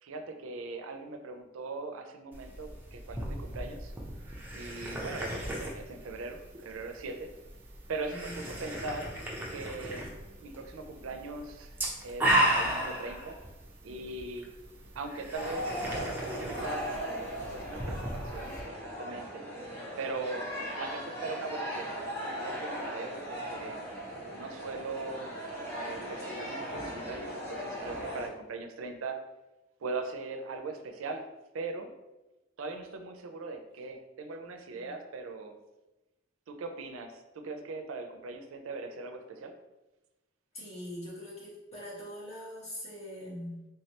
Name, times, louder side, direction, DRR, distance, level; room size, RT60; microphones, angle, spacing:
voice 1, 0.0-3.9 4.5-7.3 7.9-9.2 9.5-10.1 10.4-11.7 12.0-13.4 13.8-14.5 14.9-17.2 17.5-19.4 20.0-20.5 20.8-23.8 24.3-25.3 25.8-29.2 29.8-31.3 31.5-31.9 32.6-35.6 36.5-39.5, right 3 dB, 85° right, 6 dB, 0.4 m, -40 dB
sound 1, 2.3-18.6, right 1 dB, 10° right, 0.6 m, -35 dB
voice 2, 8.1-8.4 34.7-34.9 40.5-43.7, equal, 30° left, -7 dB, 1.3 m, -42 dB
sound 2, 15.3-28.3, equal, 50° left, 1.4 m, -38 dB
3.5 x 3.2 x 2.8 m, 1.0 s
head